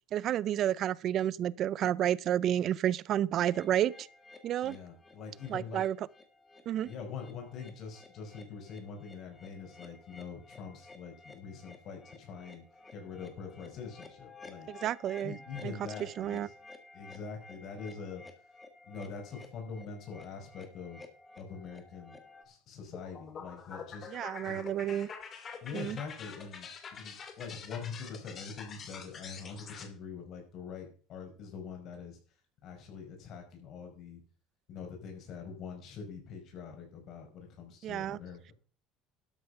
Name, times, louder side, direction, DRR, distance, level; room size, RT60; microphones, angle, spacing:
voice 1, 0.1-4.1 4.4-4.8 5.5-6.0 6.7-6.9 14.7-15.4 15.6-15.7 16.2-16.5 24.1-25.1 25.7-26.0 37.8-38.2, right 11 dB, 50° right, 0.5 m, -30 dB
sound 1, 3.4-22.4, left 3 dB, 15° left, 2.1 m, -54 dB
voice 2, 4.6-5.8 6.8-12.6 12.9-14.7 15.2-16.5 16.9-18.2 18.9-21.0 21.4-22.2 22.5-24.1 24.4-24.9 25.6-32.2 32.6-34.2 34.7-38.5, left 5 dB, 55° left, 4.9 m, -44 dB
sound 2, 22.9-29.9, left 6 dB, 35° left, 2.5 m, -46 dB
12.5 x 7.1 x 5.7 m
cardioid pair, 120°, 0 cm